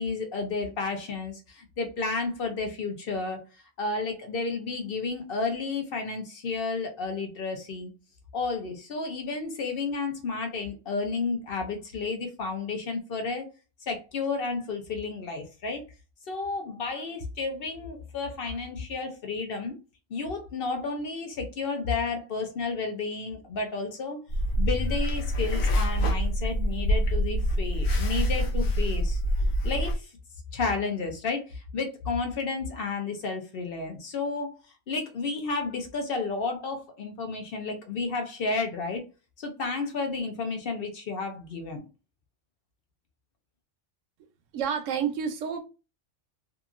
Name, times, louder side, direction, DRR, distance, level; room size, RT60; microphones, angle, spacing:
voice 1, 0.0-3.4 3.8-7.9 8.3-13.5 13.8-15.8 16.3-19.8 20.1-24.2 24.6-29.2 29.6-30.1 30.5-34.6 34.9-39.0 39.4-41.8, left 4 dB, 55° left, 0.7 m, -32 dB
sound 1, 24.3-29.9, equal, 80° left, 0.9 m, -26 dB
voice 2, 44.5-45.6, right 7 dB, 80° right, 0.9 m, -29 dB
2.8 x 2.4 x 2.4 m
omnidirectional pair, 1.3 m